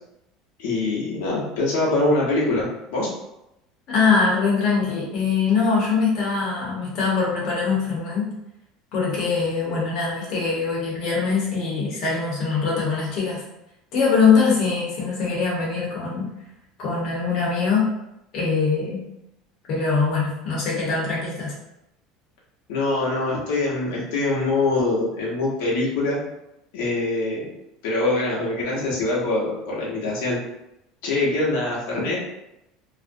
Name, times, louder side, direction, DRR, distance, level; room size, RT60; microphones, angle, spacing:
voice 1, 0.6-3.1 22.7-26.2 26.7-27.5 27.8-30.4 31.0-32.3, left 2 dB, 85° left, -5 dB, 0.7 m, -24 dB
voice 2, 3.9-8.3 8.9-13.4 13.9-16.3 16.8-17.9 18.3-19.0 19.7-21.5, left 5 dB, 45° left, -5 dB, 0.8 m, -22 dB
2.4 x 2.0 x 2.5 m, 0.86 s
cardioid pair, 165°, 0 cm